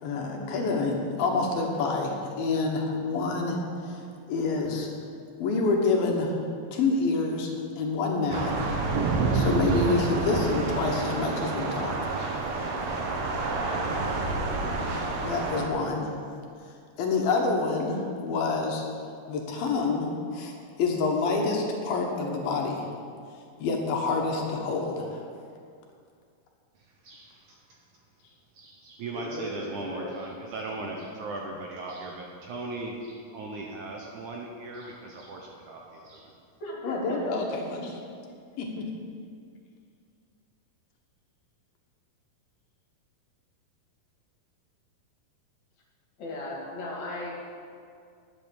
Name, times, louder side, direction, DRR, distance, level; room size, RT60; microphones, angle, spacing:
voice 1, 0.0-4.0 4.3-4.9 5.4-6.4 6.7-8.5 9.3-12.3 15.2-16.2 17.0-18.8 19.3-20.5 20.8-22.9 23.6-25.2 36.8-37.9 38.6-38.8, left 3 dB, 75° left, 1 dB, 2.9 m, -27 dB
Thunder / Rain, 8.3-15.7, right 3 dB, 85° right, 3.2 m, -28 dB
voice 2, 27.0-27.6 28.5-36.3, right 2 dB, 70° right, -1 dB, 2.0 m, -38 dB
voice 3, 29.1-30.1 36.6-37.4 46.2-47.3, left 1 dB, 50° left, -4 dB, 3.3 m, -37 dB
11.0 x 8.4 x 7.1 m, 2.3 s
omnidirectional pair, 4.4 m